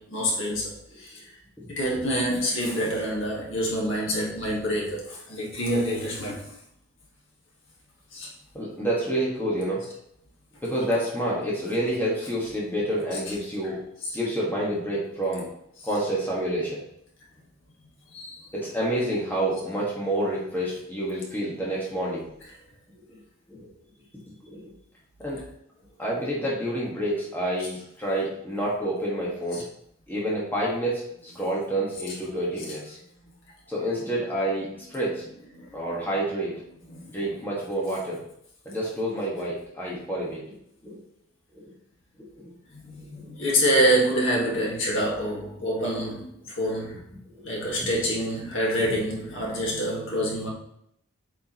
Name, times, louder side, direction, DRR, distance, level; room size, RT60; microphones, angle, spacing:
voice 1, 0.0-1.3 1.7-6.5 8.1-8.3 13.1-13.3 14.0-14.2 15.8-15.9 17.8-18.5 29.5-29.6 32.1-32.2 32.6-32.7 35.5-35.9 36.9-37.4 42.7-47.0 47.4-50.5, equal, 60° left, -4 dB, 2.0 m, -27 dB
voice 2, 1.6-2.0 2.7-2.9 8.5-9.8 10.6-13.8 14.1-15.5 15.8-16.8 18.5-22.3 23.1-23.2 23.5-23.7 24.4-24.7 25.2-25.4 26.0-29.6 30.1-33.0 33.7-35.2 35.7-36.6 37.1-38.2 38.6-40.5 40.8-41.0 41.6-41.7 42.3-42.5 43.1-43.3 47.3-47.5, right 1 dB, 10° left, -6 dB, 1.6 m, -28 dB
8.4 x 4.9 x 3.1 m, 0.72 s
head